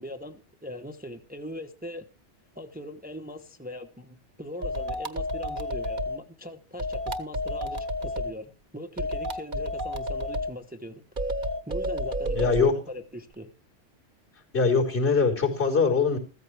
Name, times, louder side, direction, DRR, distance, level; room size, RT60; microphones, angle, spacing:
voice 1, 0.0-2.1 2.5-11.0 11.7-12.6 12.9-13.5, equal, 10° right, 0.9 m, -40 dB
sound 1, 4.6-6.2 6.8-8.3 9.0-10.5 11.2-12.7, equal, 45° right, 1.4 m, -30 dB
voice 2, 12.3-12.8 14.5-16.2, left 4 dB, 65° left, 4.6 m, -22 dB
14.5 x 14.0 x 3.4 m
omnidirectional pair, 1.2 m